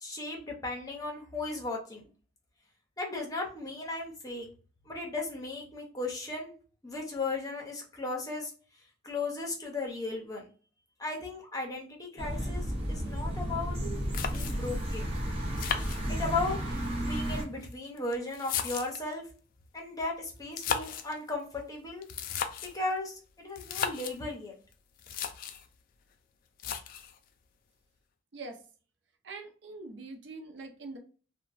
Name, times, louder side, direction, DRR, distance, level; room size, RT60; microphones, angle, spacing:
voice 1, 0.0-2.0 3.0-4.5 4.9-6.5 6.8-8.5 9.0-10.5 11.0-13.8 14.3-15.1 16.1-19.2 19.7-22.1 22.7-24.5, left 3 dB, 20° left, 0 dB, 0.7 m, -36 dB
sound 1, 12.2-17.4, equal, 35° right, 0.8 m, -33 dB
sound 2, 14.1-14.8 15.6-16.5 17.4-19.1 20.4-21.2 22.0-22.8 23.6-24.2 24.7-24.8 25.0-25.7 26.6-27.2, left 7 dB, 50° left, 0.3 m, -35 dB
voice 2, 29.2-31.0, right 3 dB, 75° right, 5 dB, 0.6 m, -43 dB
2.9 x 2.1 x 2.5 m, 0.38 s
head